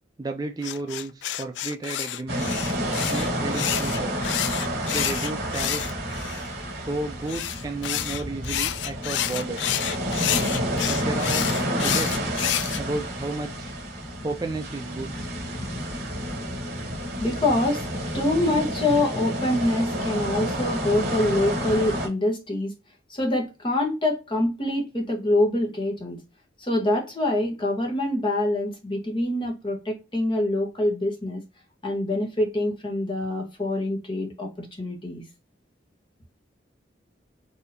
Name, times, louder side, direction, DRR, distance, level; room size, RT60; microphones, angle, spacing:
voice 1, 0.2-2.6 3.1-4.1 4.9-6.1 6.8-9.7 10.8-12.3 12.8-13.7 14.2-15.3, right 2 dB, 20° right, 0.3 m, -33 dB
sound 1, 0.6-6.5 7.3-12.8, left 12 dB, 70° left, 0.3 m, -29 dB
sound 2, 2.3-22.1, equal, 55° right, 2.2 m, -29 dB
voice 2, 17.2-17.9 18.1-22.7 23.1-26.2 26.6-31.4 31.8-35.2, left 1 dB, 25° left, 1.1 m, -25 dB
4.1 x 2.7 x 2.6 m
head